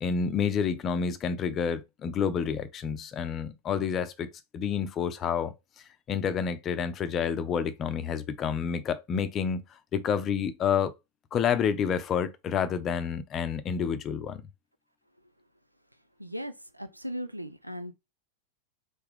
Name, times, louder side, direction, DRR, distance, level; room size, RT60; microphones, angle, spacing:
voice 1, 0.0-5.5 6.1-9.6 9.9-10.9 11.3-14.4, left 7 dB, 30° left, 0.6 m, -29 dB
voice 2, 16.2-17.9, equal, 90° right, 0.4 m, -37 dB
4.1 x 3.5 x 3.4 m
figure-of-eight pair, 90°, 0 cm